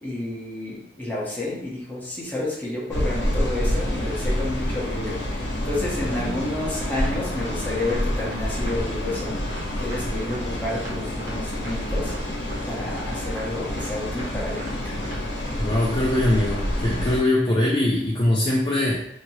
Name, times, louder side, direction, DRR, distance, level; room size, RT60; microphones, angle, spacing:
voice 1, 0.0-9.4 9.8-12.1 12.6-15.0, left 2 dB, 10° left, -6 dB, 1.0 m, -30 dB
sound 1, 2.9-17.2, left 1 dB, 75° left, 0.9 m, -28 dB
voice 2, 6.1-6.4 15.6-19.1, left 1 dB, 30° left, -3 dB, 0.4 m, -22 dB
sound 2, 7.0-7.1 7.4-7.5 7.8-7.9 8.2-8.4 8.7-8.8 9.1-9.2 9.5-9.6 9.9-10.0 10.3-10.4 10.8-10.9 11.2-11.3 11.6-11.7 12.1-12.2 12.5-12.6 12.9-13.0 13.4-13.5 13.8-14.3 14.6-14.7 15.0-15.2, right 1 dB, 55° right, 1.0 m, -39 dB
2.9 x 2.8 x 2.9 m, 0.76 s
head